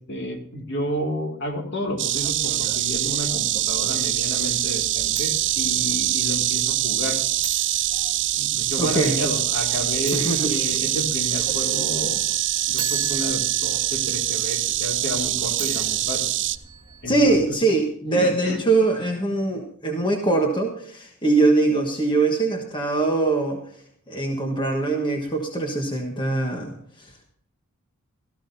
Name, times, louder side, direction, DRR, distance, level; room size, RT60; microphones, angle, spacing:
voice 1, 0.1-7.2 8.3-12.2 12.7-16.2 17.0-17.5 18.1-18.6, left 1 dB, 55° left, 2 dB, 2.4 m, -31 dB
Insect, 2.0-16.6, right 14 dB, 55° right, 0.6 m, -24 dB
sound 1, 2.1-17.4, right 4 dB, 25° right, 1.9 m, -40 dB
voice 2, 8.8-9.2 10.1-10.5 17.0-23.6 24.1-27.1, right 3 dB, 20° left, 2 dB, 1.3 m, -22 dB
17.0 x 14.0 x 2.7 m, 0.63 s
head